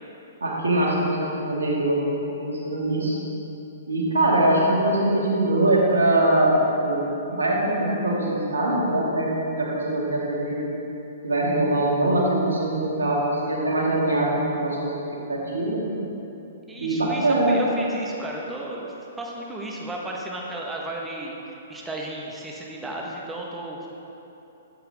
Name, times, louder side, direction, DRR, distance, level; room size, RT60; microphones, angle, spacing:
voice 1, 0.4-3.2 3.9-7.0 7.3-10.7 11.2-14.9 15.3-15.8 16.8-17.6, right 1 dB, 90° right, -4 dB, 2.3 m, -22 dB
voice 2, 16.7-23.9, right 2 dB, 10° right, -2 dB, 1.4 m, -34 dB
12.0 x 7.5 x 3.7 m, 3.0 s
hypercardioid pair, 125°, 0 cm